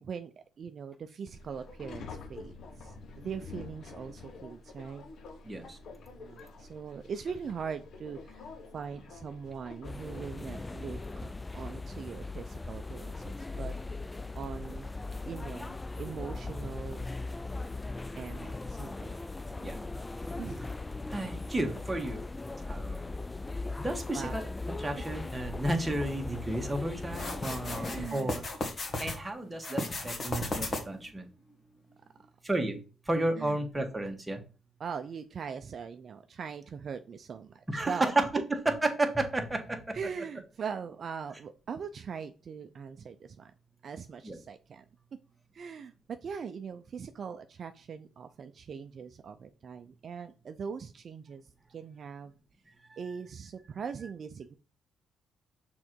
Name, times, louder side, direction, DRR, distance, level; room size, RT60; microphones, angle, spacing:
voice 1, 0.0-5.0 6.2-13.7 14.3-14.9 15.2-17.1 18.2-19.2 20.4-20.7 24.1-24.4 27.8-28.5 33.4-33.6 34.8-38.1 39.9-43.5 43.8-44.8 45.5-52.3 53.0-54.5, right 6 dB, 50° right, 0.5 m, -41 dB
Subway metro underground, 1.3-11.3, left 3 dB, 60° left, 1.1 m, -48 dB
voice 2, 5.4-5.8 19.6-19.8 21.1-22.2 22.7-23.1 23.8-24.5 24.8-28.4 29.0-31.3 32.4-32.8 33.0-34.4 37.7-40.0 44.2-44.4 52.9-53.0, right 2 dB, 15° right, 1.5 m, -32 dB
sound 1, 9.8-28.1, left 3 dB, 15° left, 0.3 m, -39 dB
sound 2, 27.1-29.2 29.6-31.1, left 2 dB, 40° left, 1.7 m, -35 dB
6.2 x 3.8 x 4.6 m
cardioid pair, 90°, 0 cm